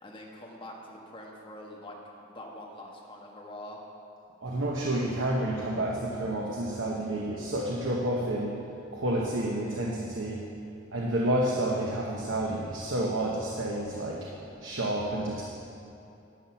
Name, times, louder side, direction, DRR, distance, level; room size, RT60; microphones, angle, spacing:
voice 1, 0.0-3.8, left 1 dB, 25° left, -2 dB, 1.3 m, -45 dB
voice 2, 4.4-8.6 8.9-10.4 10.9-14.3 14.6-15.4, right 1 dB, 65° right, -2 dB, 1.0 m, -30 dB
11.0 x 7.3 x 5.9 m, 2.7 s
head